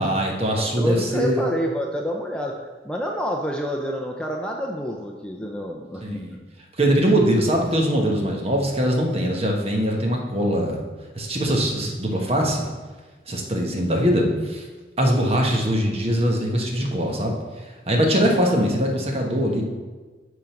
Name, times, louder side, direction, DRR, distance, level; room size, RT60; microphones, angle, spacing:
voice 1, 0.0-1.4 6.0-6.3 6.8-10.8 11.2-12.6 13.3-14.6 15.0-17.4 17.9-19.6, equal, 35° right, 0 dB, 1.2 m, -22 dB
voice 2, 0.6-2.5 2.8-6.4, equal, 5° left, 0 dB, 0.5 m, -28 dB
8.9 x 3.8 x 5.8 m, 1.3 s
head